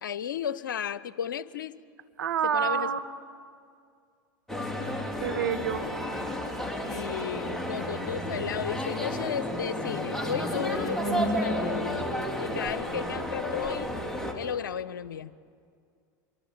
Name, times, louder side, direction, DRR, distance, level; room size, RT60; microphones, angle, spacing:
voice 1, 0.0-1.8 2.5-2.9 6.9-11.9 12.4-13.9 14.3-15.3, left 8 dB, 85° left, 18 dB, 0.7 m, -34 dB
voice 2, 2.2-3.0 5.2-5.9, right 8 dB, 80° right, 8 dB, 1.3 m, -27 dB
sound 1, 4.5-14.3, equal, 5° left, 3.7 m, -31 dB
26.5 x 23.0 x 8.7 m, 2.2 s
hypercardioid pair, 80°, 10 cm